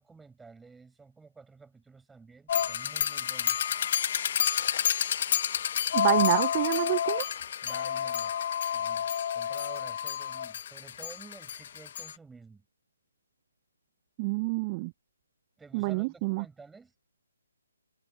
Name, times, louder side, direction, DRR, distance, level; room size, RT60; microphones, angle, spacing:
voice 1, 0.0-3.6 7.6-8.4 8.7-12.6 15.6-16.9, right 4 dB, 5° right, 5.9 m, -51 dB
sound 1, 2.5-12.1, left 9 dB, 40° left, 2.1 m, -29 dB
voice 2, 5.9-7.3 14.2-14.9 15.7-16.5, right 26 dB, 25° right, 0.3 m, -28 dB
figure-of-eight pair, 140°, 0 cm